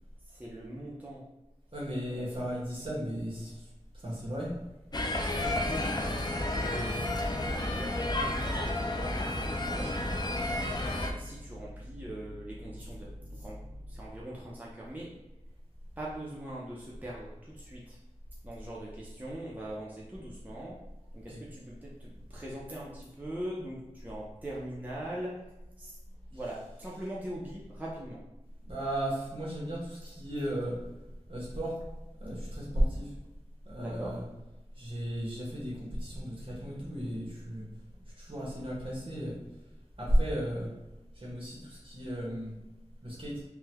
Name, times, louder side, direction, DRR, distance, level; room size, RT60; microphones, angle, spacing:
voice 1, 0.3-1.3 2.1-2.6 5.7-6.4 7.4-10.1 10.9-13.6 13.9-15.1 16.0-18.0 18.4-20.8 21.1-25.4 25.8-26.0 26.3-28.2 33.8-34.2, right 1 dB, 15° right, -5 dB, 0.6 m, -42 dB
voice 2, 1.7-3.7 3.9-4.6 6.6-7.0 21.3-21.4 28.6-30.8 31.3-31.9 32.2-33.2 33.6-34.2 34.8-37.6 38.2-39.4 40.0-40.7 41.1-42.5 43.0-43.4, equal, 45° right, -4 dB, 1.1 m, -34 dB
sound 1, 4.9-11.1, left 1 dB, 35° left, 0.4 m, -31 dB
sound 2, 7.7-14.3, equal, 65° right, 1.3 m, -46 dB
3.7 x 2.2 x 2.9 m, 1.0 s
wide cardioid pair, 50°, 12 cm